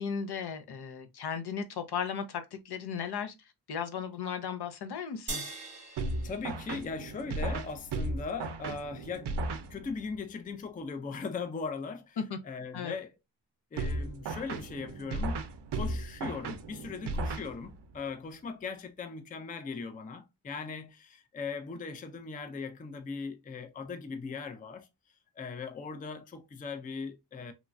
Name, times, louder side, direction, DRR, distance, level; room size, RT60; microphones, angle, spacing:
voice 1, 0.0-5.4 12.3-12.4 12.7-12.9, left 7 dB, 75° left, 0.6 m, -36 dB
sound 1, 5.3-7.9, right 3 dB, 20° right, 0.8 m, -42 dB
sound 2, 6.0-10.2 13.8-18.0, right 2 dB, 90° right, 0.5 m, -36 dB
voice 2, 6.2-12.2 12.4-13.1 13.7-15.4 15.7-24.9 25.4-27.5, left 4 dB, 20° left, 0.3 m, -39 dB
3.1 x 2.2 x 2.4 m
wide cardioid pair, 130°, 40 cm